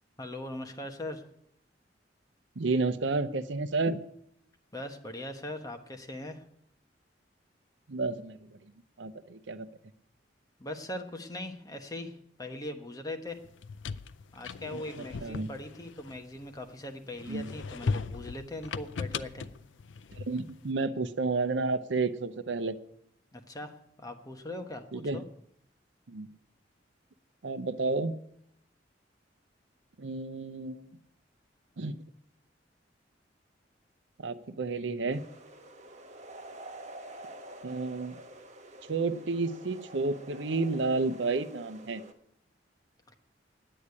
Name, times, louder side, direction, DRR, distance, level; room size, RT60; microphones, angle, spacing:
voice 1, 0.2-1.2 4.7-6.4 10.6-13.4 14.3-19.5 23.3-25.2 43.1-43.2, left 1 dB, 20° left, 5 dB, 1.2 m, -40 dB
voice 2, 2.6-4.0 7.9-8.7 9.0-9.7 14.7-15.5 17.3-17.5 20.1-22.8 24.9-25.2 26.1-26.3 27.4-28.2 30.0-30.9 31.8-32.0 34.2-35.2 37.6-38.2 38.9-42.0, right 3 dB, 75° right, 12 dB, 0.7 m, -31 dB
sound 1, 13.4-16.7 17.2-20.6, left 4 dB, 80° left, 0.5 m, -38 dB
sound 2, 35.1-42.1, right 1 dB, 40° right, 1.3 m, -48 dB
10.0 x 8.7 x 9.6 m, 0.73 s
head